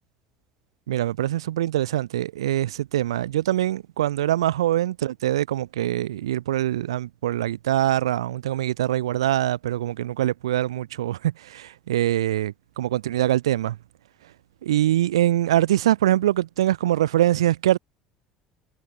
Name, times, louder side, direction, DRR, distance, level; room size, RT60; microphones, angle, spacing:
voice 1, 0.9-13.8 14.6-17.8, right 13 dB, 70° right, 3.7 m, -23 dB
figure-of-eight pair, 65°, 3 cm